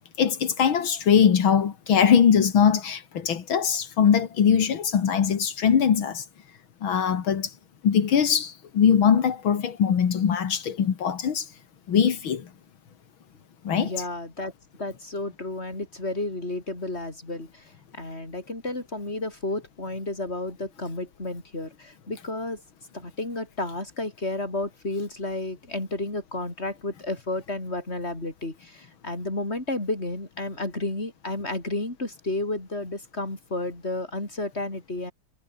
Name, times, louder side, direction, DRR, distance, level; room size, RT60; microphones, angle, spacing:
voice 1, 0.2-6.3 6.8-7.5 7.8-11.5 11.9-12.5 13.6-13.9, left 7 dB, 85° left, 2.6 m, -21 dB
voice 2, 13.8-14.5 14.8-22.6 22.9-35.1, left 2 dB, 30° left, 6.2 m, -32 dB
omnidirectional pair, 2.1 m